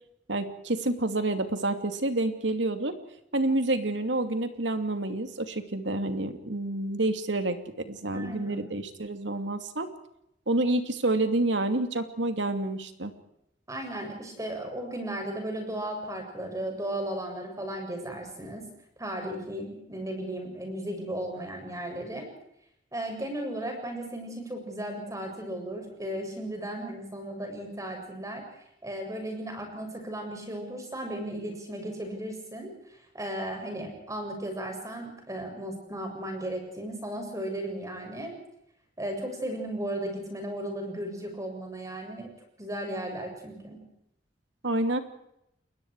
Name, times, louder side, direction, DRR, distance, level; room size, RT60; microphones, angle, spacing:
voice 1, 0.3-3.0 3.3-9.9 10.5-13.1 44.6-45.0, right 2 dB, 80° right, 8 dB, 2.6 m, -28 dB
voice 2, 8.1-8.6 13.7-18.7 19.0-22.3 22.9-28.4 28.8-32.7 33.1-38.4 39.0-42.3 42.6-43.8, right 1 dB, 20° right, 3 dB, 7.5 m, -35 dB
30.0 x 21.5 x 4.8 m, 0.78 s
head